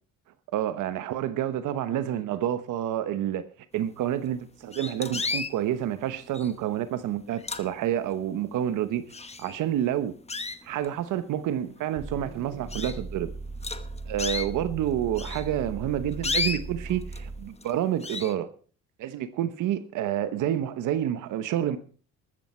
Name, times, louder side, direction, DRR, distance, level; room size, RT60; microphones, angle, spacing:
voice 1, 0.5-3.4 3.7-9.1 9.4-10.1 10.6-13.3 14.1-18.5 19.0-21.8, right 11 dB, 85° right, 1.1 m, -28 dB
sound 1, 4.1-4.2 4.7-5.6 6.3-6.7 7.2-8.1 8.6-8.7 9.1-9.8 10.3-11.0 11.6-11.7 12.1-12.2 12.7-13.0 13.6-14.5 15.2-17.2 17.6-17.8 18.0-18.3, left 4 dB, 20° left, 1.1 m, -33 dB
sound 2, 12.0-17.6, right 3 dB, 35° right, 2.0 m, -38 dB
14.0 x 13.0 x 4.4 m
cardioid pair, 90°, 30 cm